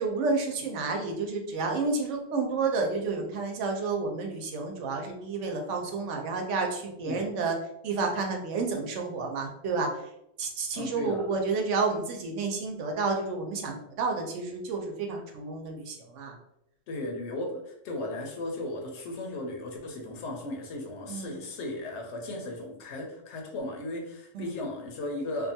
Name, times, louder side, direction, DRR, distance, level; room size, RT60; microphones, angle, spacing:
voice 1, 0.0-7.5 7.8-9.9 10.4-16.4 21.1-21.4 24.3-24.5, right 4 dB, 75° right, 3 dB, 0.9 m, -30 dB
voice 2, 10.7-11.3 16.9-25.5, left 1 dB, 70° left, 1 dB, 0.9 m, -36 dB
2.6 x 2.3 x 2.7 m, 0.80 s
omnidirectional pair, 1.3 m